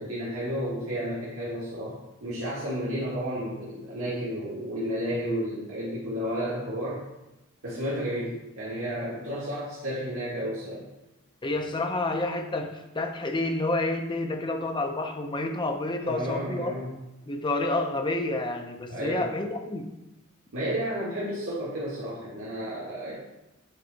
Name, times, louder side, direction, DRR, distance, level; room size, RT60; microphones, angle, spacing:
voice 1, 0.0-2.0 2.2-7.0 7.6-10.8 16.1-16.9 18.9-19.3 20.5-23.1, equal, 75° right, -8 dB, 1.7 m, -32 dB
voice 2, 11.4-16.7 17.3-19.9, left 2 dB, 20° left, 5 dB, 0.6 m, -29 dB
8.0 x 3.9 x 4.0 m, 0.98 s
head